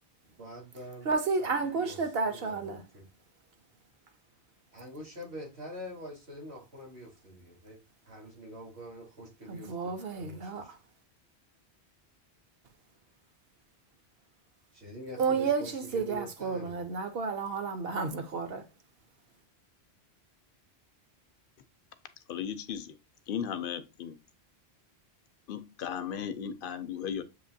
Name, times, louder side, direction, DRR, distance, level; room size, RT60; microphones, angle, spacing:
voice 1, 0.4-1.1 1.4-3.1 4.7-7.8 8.0-10.7 14.7-16.8, equal, 85° right, 3.7 m, -45 dB
voice 2, 1.1-2.8 9.5-10.6 15.2-18.6, right 4 dB, 65° right, 0.9 m, -31 dB
voice 3, 22.3-22.9 23.3-24.2 25.5-27.2, left 8 dB, 60° left, 0.7 m, -36 dB
6.9 x 2.8 x 2.6 m
omnidirectional pair, 1.1 m